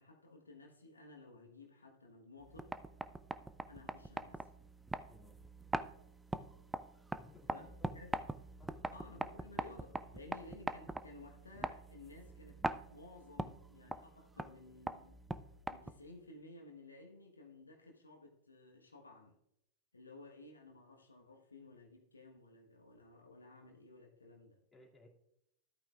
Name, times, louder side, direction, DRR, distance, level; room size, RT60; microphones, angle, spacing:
voice 1, 0.0-2.7 3.7-4.5 7.5-7.7 7.9-8.1 8.9-15.2 15.7-19.4 19.9-24.6, left 2 dB, 80° left, 2 dB, 1.2 m, -56 dB
sound 1, 2.4-16.2, right 2 dB, 5° right, 0.4 m, -43 dB
voice 2, 5.1-5.4 7.2-7.9 8.6-8.8 10.0-10.2 24.7-25.1, left 2 dB, 10° left, -3 dB, 2.4 m, -60 dB
13.5 x 8.9 x 2.4 m, 0.79 s
figure-of-eight pair, 90°, 0 cm